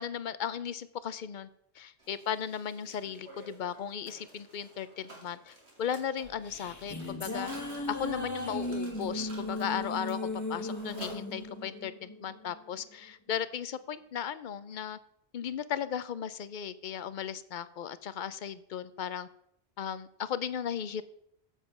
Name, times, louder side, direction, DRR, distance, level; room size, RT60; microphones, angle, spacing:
voice 1, 0.0-1.5 1.8-7.5 7.9-15.0 15.3-19.3 19.8-21.0, left 8 dB, 55° left, 15 dB, 0.6 m, -36 dB
Mechanisms, 2.0-11.8, right 2 dB, 70° right, 2.5 m, -53 dB
sound 1, 6.2-12.8, left 1 dB, 15° left, 1.2 m, -37 dB
8.2 x 7.4 x 5.9 m, 0.74 s
omnidirectional pair, 1.1 m